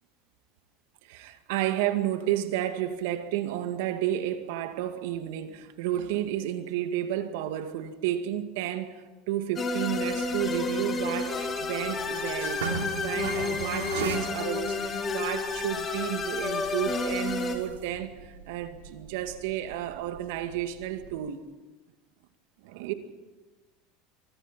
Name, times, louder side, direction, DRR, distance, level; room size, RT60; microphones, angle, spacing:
voice 1, 1.0-21.4 22.6-22.9, right 12 dB, 70° right, 2.1 m, -32 dB
sound 1, 9.5-17.6, left 4 dB, 30° left, 4.1 m, -31 dB
sound 2, 9.9-21.1, right 6 dB, 90° right, 3.0 m, -40 dB
24.5 x 24.0 x 4.4 m
hypercardioid pair, 85°, 0 cm